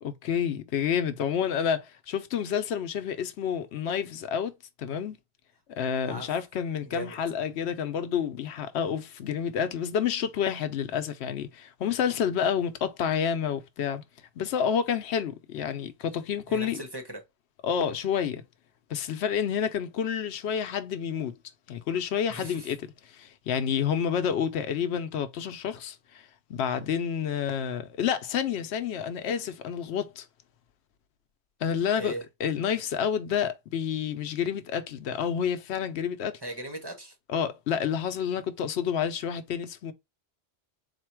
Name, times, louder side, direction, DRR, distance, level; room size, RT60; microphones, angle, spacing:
voice 1, 0.0-4.5 4.8-5.2 5.8-14.0 14.4-16.8 17.6-18.4 18.9-21.3 21.7-22.8 23.1-30.3 31.6-32.1 32.4-36.4 37.3-39.9, left 8 dB, 90° left, 0.9 m, -29 dB
voice 2, 6.8-7.2 16.5-17.2 22.3-22.7 32.0-32.2 36.4-37.1, right 1 dB, 25° right, 0.9 m, -38 dB
4.2 x 2.2 x 4.4 m
omnidirectional pair, 1.1 m